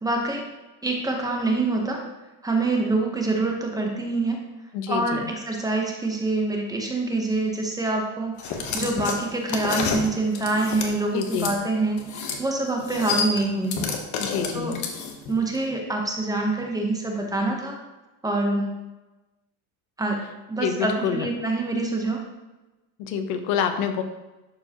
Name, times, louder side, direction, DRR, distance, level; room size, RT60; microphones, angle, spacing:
voice 1, 0.0-0.4 0.8-2.0 2.4-4.4 4.9-13.9 14.5-14.7 15.3-17.8 18.2-18.8 20.0-20.2 20.5-22.2, right 2 dB, 10° right, 1 dB, 0.9 m, -26 dB
voice 2, 4.7-5.3 11.1-11.5 14.2-14.8 20.6-21.3 23.0-24.0, left 7 dB, 80° left, 7 dB, 1.0 m, -27 dB
sound 1, 8.4-11.5 12.0-12.4 12.7-15.3, left 5 dB, 45° left, 1.1 m, -29 dB
11.5 x 4.6 x 2.9 m, 1.1 s
cardioid pair, 150°, 41 cm